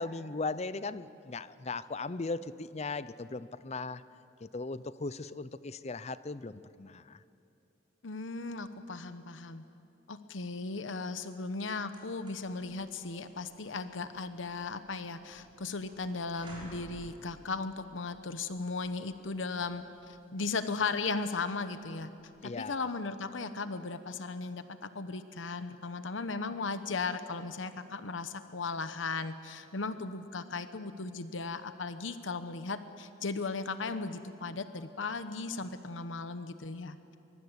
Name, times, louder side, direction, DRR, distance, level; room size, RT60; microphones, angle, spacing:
voice 1, 0.0-4.0 4.4-7.2 22.4-22.9, left 3 dB, 35° left, 16 dB, 0.6 m, -38 dB
voice 2, 8.0-9.6 10.1-22.1 22.4-37.0, left 4 dB, 85° left, 11 dB, 1.0 m, -37 dB
sound 1, 11.9-22.7, right 1 dB, 25° right, 6.0 m, -56 dB
23.5 x 22.5 x 8.2 m, 2.6 s
head